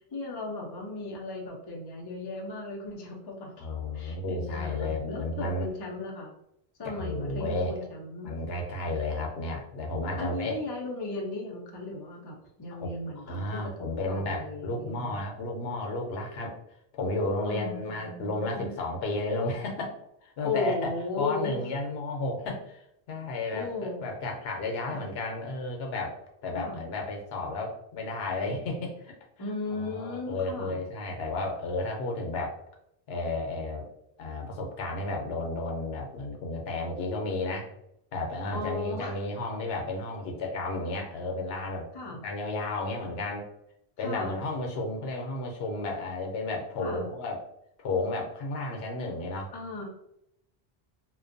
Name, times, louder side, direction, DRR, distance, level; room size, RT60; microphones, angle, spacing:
voice 1, 0.1-3.7 3.9-6.3 6.8-8.3 10.2-15.2 17.5-18.8 20.4-21.6 23.5-24.0 24.9-25.1 26.5-26.8 29.4-30.8 38.5-39.2 41.9-42.2 44.0-44.3 46.8-47.1 49.5-49.9, left 3 dB, 35° left, 0 dB, 0.4 m, -36 dB
voice 2, 3.6-5.7 6.8-7.8 8.2-10.5 12.8-12.9 13.3-16.6 16.9-20.0 20.2-20.7 21.2-26.2 26.4-29.1 29.7-32.6 33.1-33.9 34.2-37.7 38.1-43.5 44.0-47.4 47.8-49.5, left 2 dB, 75° left, 1 dB, 0.8 m, -32 dB
2.5 x 2.1 x 2.5 m, 0.78 s
omnidirectional pair, 1.1 m